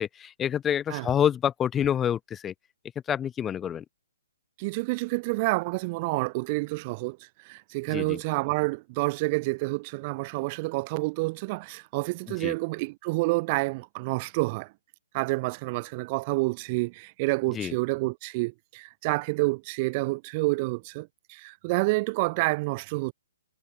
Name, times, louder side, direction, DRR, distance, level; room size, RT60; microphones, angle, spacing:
voice 1, 0.0-2.5 3.1-3.8 7.9-8.2 12.4-12.5 17.5-17.8, left 9 dB, 15° left, 5.6 m, -27 dB
voice 2, 4.6-14.7 15.1-23.1, right 25 dB, 35° right, 2.5 m, -28 dB
hypercardioid pair, 135°, 0 cm